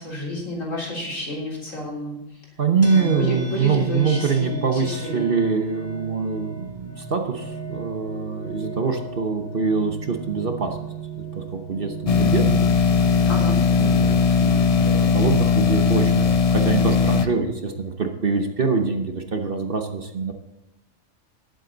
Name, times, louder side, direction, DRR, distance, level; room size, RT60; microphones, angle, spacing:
voice 1, 0.0-2.4 2.9-5.3 13.3-13.6, left 1 dB, 70° left, -3 dB, 4.0 m, -30 dB
voice 2, 2.6-10.8 11.3-12.6 13.8-20.3, right 5 dB, 45° right, 5 dB, 1.0 m, -24 dB
sound 1, 2.8-16.3, right 5 dB, 10° left, 1.3 m, -38 dB
sound 2, 12.1-17.2, left 6 dB, 50° left, 0.4 m, -19 dB
19.0 x 7.8 x 3.9 m, 0.90 s
omnidirectional pair, 1.4 m